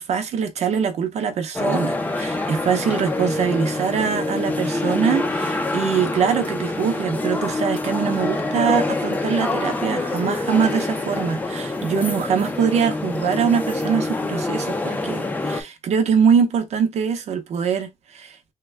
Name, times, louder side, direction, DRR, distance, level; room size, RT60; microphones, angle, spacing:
voice 1, 0.0-18.4, right 6 dB, 75° right, 0.7 m, -23 dB
sound 1, 1.5-15.6, left 2 dB, 15° left, 0.5 m, -26 dB
3.5 x 2.2 x 3.3 m
wide cardioid pair, 160°, 11 cm